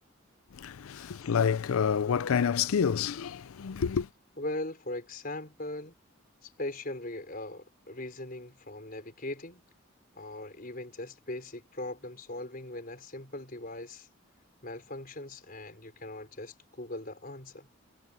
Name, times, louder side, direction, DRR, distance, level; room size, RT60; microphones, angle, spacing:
voice 1, 0.5-4.1, left 7 dB, 85° left, 0.5 m, -28 dB
voice 2, 4.4-5.9 6.4-9.6 10.1-14.1 14.6-17.7, left 1 dB, 45° left, 5.1 m, -40 dB
head